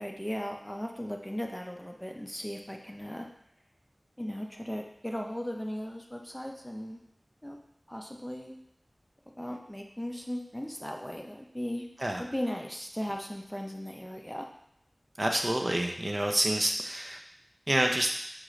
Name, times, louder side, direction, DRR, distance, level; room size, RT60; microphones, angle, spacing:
voice 1, 0.0-3.3 4.2-7.0 7.4-7.6 7.9-8.5 9.4-11.9 12.2-14.5, equal, 10° left, 2 dB, 0.5 m, -37 dB
voice 2, 15.2-17.2 17.7-18.1, right 1 dB, 40° right, 2 dB, 0.5 m, -28 dB
6.1 x 2.4 x 3.0 m, 0.75 s
wide cardioid pair, 50°, 0 cm